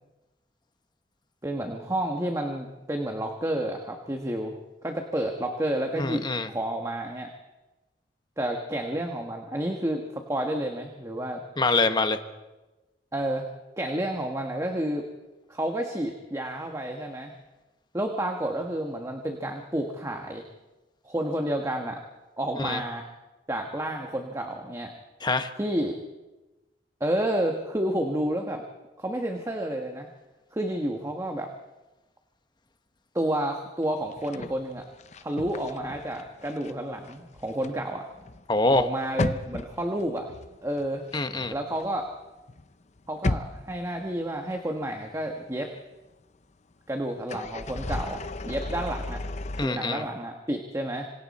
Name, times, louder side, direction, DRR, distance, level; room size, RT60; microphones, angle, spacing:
voice 1, 1.4-4.6 4.8-6.2 6.5-7.3 8.4-11.4 13.1-13.4 13.8-15.1 15.5-17.3 17.9-20.4 21.0-22.0 22.4-23.1 23.5-24.9 25.6-26.0 27.0-28.6 29.0-30.1 30.5-31.5 33.1-34.8 35.2-38.0 38.7-40.3 40.6-41.0 41.5-42.1 43.1-45.7 46.9-49.2 49.6-51.1, right 1 dB, 15° right, 3 dB, 1.4 m, -30 dB
voice 2, 5.9-6.5 11.6-12.2 22.6-22.8 25.2-25.5 38.5-38.8 41.1-41.5 49.6-50.0, left 2 dB, 25° left, 8 dB, 1.2 m, -25 dB
sound 1, 34.1-36.7 37.0-42.2 42.5-44.5 44.9-45.0 47.2-49.7, left 2 dB, 40° left, 0.7 m, -35 dB
26.5 x 25.5 x 4.3 m, 1.1 s
head